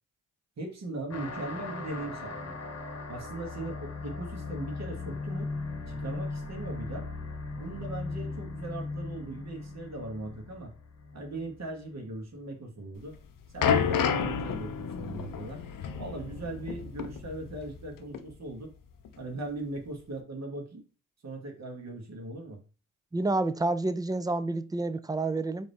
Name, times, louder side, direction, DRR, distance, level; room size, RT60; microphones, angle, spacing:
voice 1, 0.6-2.5 3.1-5.5 5.9-7.1 7.6-10.7 11.1-13.2 13.5-15.6 16.0-18.7 19.2-20.9 21.2-22.6, right 2 dB, 50° right, 1.4 m, -39 dB
sound 1, 1.1-12.1, left 3 dB, 50° left, 1.0 m, -38 dB
sound 2, 13.0-17.9 18.1-18.3 19.1-19.2, left 7 dB, 75° left, 0.6 m, -30 dB
voice 2, 23.1-25.7, right 2 dB, 10° right, 0.4 m, -29 dB
4.9 x 2.7 x 3.5 m
supercardioid pair, 50°, 34 cm